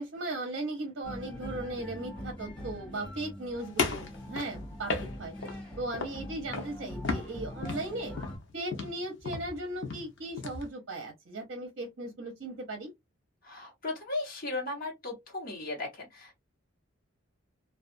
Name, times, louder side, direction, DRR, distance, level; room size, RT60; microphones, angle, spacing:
voice 1, 0.0-5.3 5.8-8.2 8.5-12.9, right 2 dB, 55° right, 0.7 m, -37 dB
sound 1, 1.0-8.4, left 1 dB, 25° left, 1.4 m, -43 dB
sound 2, 3.8-5.6 5.9-6.2 6.5-6.8 7.0-10.7, left 3 dB, 60° left, 0.7 m, -34 dB
voice 2, 13.4-16.4, left 2 dB, 45° left, 1.2 m, -36 dB
2.5 x 2.4 x 2.5 m
head